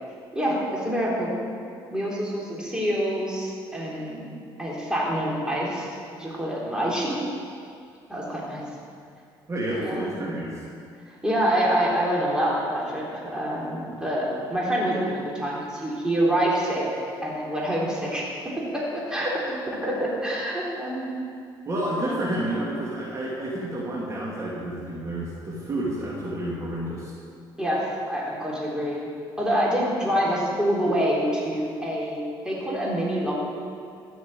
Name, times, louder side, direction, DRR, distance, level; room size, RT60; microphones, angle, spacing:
voice 1, 0.3-1.3 1.9-4.2 4.6-5.9 6.2-7.2 8.1-8.6 9.7-10.2 11.1-21.1 21.9-22.3 27.6-29.1 29.4-33.3, equal, 10° right, -5 dB, 3.6 m, -26 dB
voice 2, 9.5-10.5 21.7-27.1, right 1 dB, 30° right, -5 dB, 2.5 m, -30 dB
13.5 x 6.3 x 8.3 m, 2.4 s
cardioid pair, 95°, 9 cm